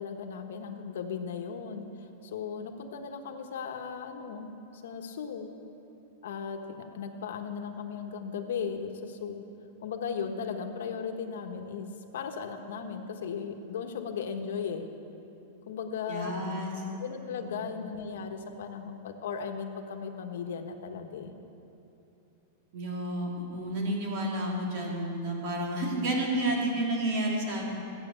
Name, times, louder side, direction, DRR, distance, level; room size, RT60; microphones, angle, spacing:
voice 1, 0.0-1.9 2.2-4.5 4.8-5.5 6.2-9.4 9.8-11.9 12.1-14.9 15.7-16.5 17.0-21.4, left 6 dB, 80° left, 5 dB, 1.3 m, -36 dB
voice 2, 16.1-16.7 17.4-17.7 22.7-27.6, right 1 dB, 45° right, -2 dB, 3.1 m, -31 dB
15.0 x 9.1 x 7.0 m, 2.9 s
supercardioid pair, 165°, 0 cm